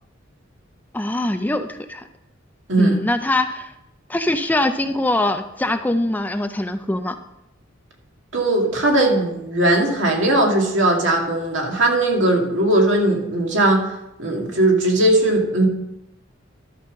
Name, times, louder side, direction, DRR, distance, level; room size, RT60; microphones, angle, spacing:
voice 1, 0.9-2.0 2.8-3.7 4.1-7.2, left 1 dB, 10° left, 8 dB, 0.4 m, -22 dB
voice 2, 2.7-3.0 8.3-13.8 14.2-15.7, right 1 dB, 65° right, 0 dB, 2.3 m, -18 dB
12.0 x 5.5 x 6.3 m, 0.85 s
head